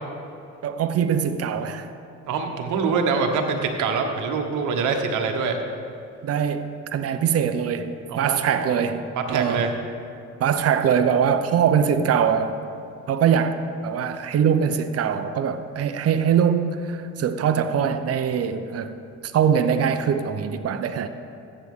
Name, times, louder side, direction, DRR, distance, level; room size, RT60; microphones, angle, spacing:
voice 1, 0.6-1.9 6.2-9.7 10.4-12.6 13.1-19.0 19.2-21.1, right 7 dB, 55° right, 9 dB, 0.7 m, -22 dB
voice 2, 2.2-5.6 8.1-8.8 9.1-9.7, right 5 dB, 80° right, 3 dB, 1.2 m, -25 dB
14.0 x 8.4 x 3.7 m, 2.5 s
cardioid pair, 90°, 30 cm